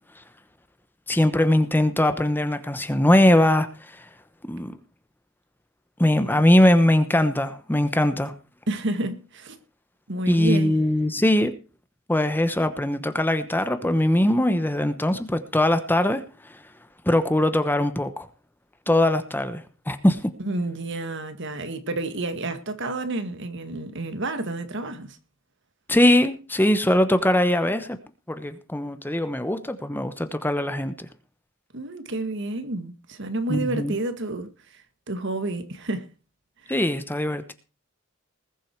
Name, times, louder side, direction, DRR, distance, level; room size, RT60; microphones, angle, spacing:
voice 1, 1.1-3.7 3.9-4.0 4.5-4.7 6.0-8.3 10.3-11.5 12.1-16.6 17.0-18.3 18.9-20.2 25.9-28.0 28.3-31.1 33.5-34.0 36.7-37.5, left 1 dB, 10° left, 1.0 m, -21 dB
voice 2, 8.7-9.6 10.1-10.8 20.4-25.2 31.7-36.1 36.6-36.7, right 2 dB, 60° right, 1.9 m, -30 dB
20.0 x 7.7 x 4.7 m
head